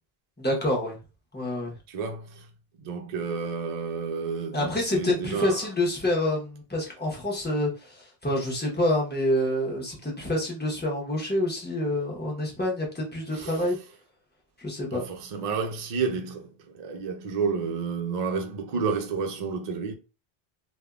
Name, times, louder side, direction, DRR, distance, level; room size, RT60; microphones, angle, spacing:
voice 1, 0.4-1.0 1.3-1.7 4.5-13.8 14.6-15.0, left 1 dB, 10° left, 0.8 m, -27 dB
voice 2, 1.9-2.4 2.8-5.6 13.3-13.6 14.9-20.0, right 5 dB, 50° right, 0.5 m, -30 dB
3.4 x 2.2 x 2.3 m
omnidirectional pair, 1.1 m